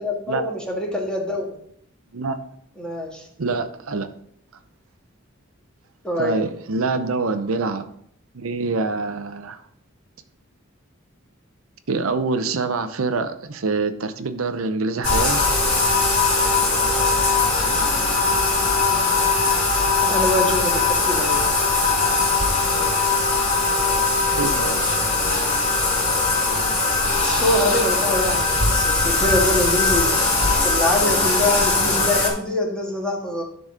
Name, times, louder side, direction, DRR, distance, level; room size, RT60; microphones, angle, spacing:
voice 1, 0.0-1.6 2.8-3.2 6.0-6.4 20.0-21.4 27.2-30.2 30.6-33.4, left 1 dB, 5° left, -2 dB, 1.7 m, -24 dB
voice 2, 3.4-4.1 6.2-7.9 8.3-9.6 11.9-15.5 24.4-25.0, right 3 dB, 90° right, 9 dB, 0.7 m, -25 dB
Bathtub (filling or washing), 15.0-32.3, left 3 dB, 40° left, 3.2 m, -20 dB
10.5 x 4.1 x 4.9 m, 0.68 s
head